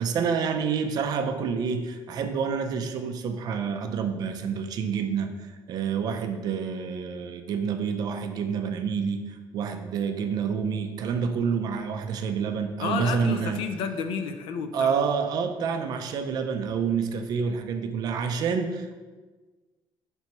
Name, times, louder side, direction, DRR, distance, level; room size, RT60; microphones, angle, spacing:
voice 1, 0.0-13.6 14.7-18.9, right 6 dB, 50° right, 7 dB, 0.3 m, -28 dB
voice 2, 12.8-14.9, left 6 dB, 75° left, 7 dB, 0.4 m, -30 dB
4.2 x 3.4 x 2.9 m, 1.3 s
cardioid pair, 180°, 9 cm